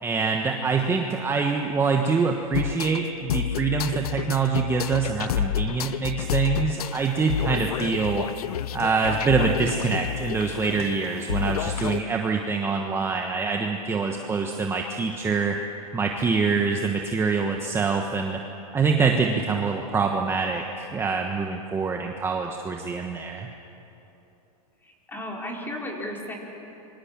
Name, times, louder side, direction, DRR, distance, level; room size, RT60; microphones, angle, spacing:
voice 1, 0.0-8.2 8.7-15.6 15.9-18.4 18.7-23.5, right 5 dB, 15° right, 3 dB, 1.3 m, -25 dB
sound 1, 2.5-12.0, left 10 dB, 85° left, 0.8 m, -29 dB
voice 2, 24.8-26.3, left 1 dB, 10° left, -1 dB, 4.4 m, -34 dB
27.5 x 24.5 x 7.4 m, 2.9 s
supercardioid pair, 140°, 19 cm